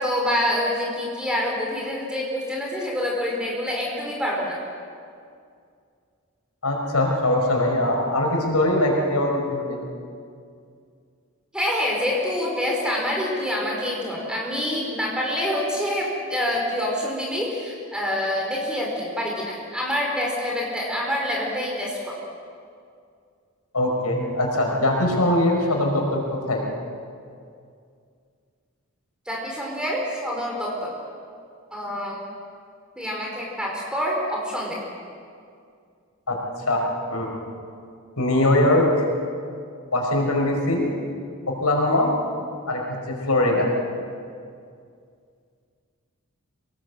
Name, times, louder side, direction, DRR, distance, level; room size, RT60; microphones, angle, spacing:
voice 1, 0.0-4.6 11.5-22.2 29.2-30.9 31.7-32.2 32.9-34.8, left 1 dB, 5° right, -2 dB, 5.0 m, -26 dB
voice 2, 6.6-9.8 23.7-26.6 36.3-36.8 37.1-37.3 38.2-39.1 39.9-40.9 41.5-42.1 42.7-43.7, left 1 dB, 90° left, 0 dB, 5.3 m, -22 dB
25.0 x 18.5 x 8.1 m, 2.3 s
head